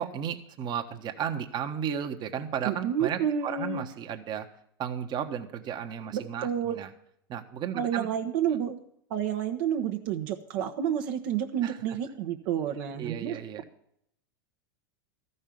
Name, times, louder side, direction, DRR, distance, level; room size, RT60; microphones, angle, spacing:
voice 1, 0.0-4.5 4.8-6.9 7.3-8.1 11.6-11.8 13.0-13.6, right 8 dB, 35° right, 6 dB, 1.2 m, -34 dB
voice 2, 2.6-3.9 6.1-6.8 7.7-8.8 9.1-13.4, right 9 dB, 60° right, 4 dB, 1.0 m, -30 dB
13.5 x 5.5 x 9.1 m, 0.72 s
hypercardioid pair, 95°, 12 cm